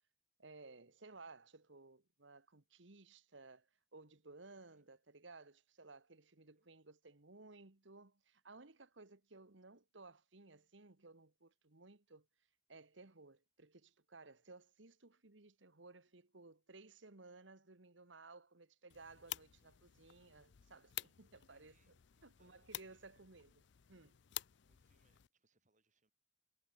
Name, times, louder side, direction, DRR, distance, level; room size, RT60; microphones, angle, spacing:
voice 1, 0.4-12.3 12.7-21.9 22.2-23.5 23.9-24.2, right 3 dB, 65° right, 1.6 m, -59 dB
voice 2, 4.6-4.9 6.3-6.7 9.0-9.1 13.0-13.1 21.5-23.2 24.7-26.1, right 3 dB, 40° right, 5.1 m, -81 dB
sound 1, 18.9-25.3, left 15 dB, 60° left, 0.5 m, -51 dB
head